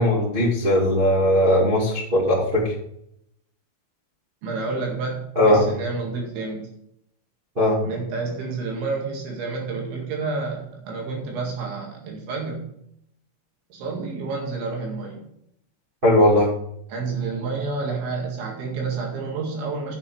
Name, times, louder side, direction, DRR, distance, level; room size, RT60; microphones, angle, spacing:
voice 1, 0.0-2.7 5.3-5.6 7.5-7.8 16.0-16.5, left 1 dB, 30° right, -7 dB, 1.0 m, -18 dB
voice 2, 4.4-6.7 7.8-12.7 13.7-15.3 16.9-20.0, right 4 dB, 70° right, 0 dB, 4.3 m, -29 dB
8.5 x 7.3 x 6.1 m, 0.74 s
omnidirectional pair, 5.7 m